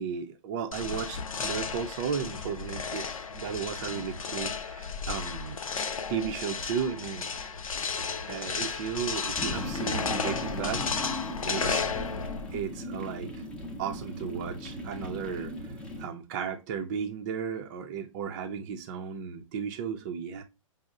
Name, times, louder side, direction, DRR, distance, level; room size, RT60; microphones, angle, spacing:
voice 1, 0.0-5.6 6.1-7.3 8.3-10.8 11.4-11.9 12.5-13.3 13.8-15.5 16.0-20.4, right 7 dB, 35° right, 0.5 m, -34 dB
sound 1, 0.7-12.6, left 5 dB, 80° left, 0.6 m, -33 dB
sound 2, 9.4-16.1, left 1 dB, 5° left, 0.6 m, -38 dB
5.2 x 2.0 x 3.6 m
hypercardioid pair, 130°, 17 cm